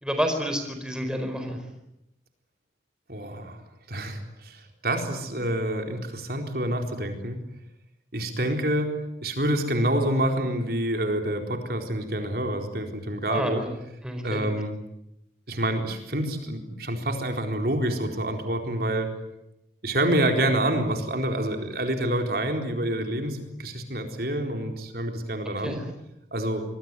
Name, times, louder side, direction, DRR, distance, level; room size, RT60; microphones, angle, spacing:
voice 1, 0.0-1.6 13.3-13.7 14.0-14.5 25.6-25.8, equal, 5° right, 5 dB, 4.5 m, -29 dB
voice 2, 3.1-3.6 3.9-7.4 8.1-8.9 9.2-13.6 14.2-14.7 15.5-19.1 19.8-25.8 26.3-26.6, right 1 dB, 55° right, 4 dB, 4.2 m, -27 dB
26.5 x 21.5 x 9.8 m, 0.86 s
head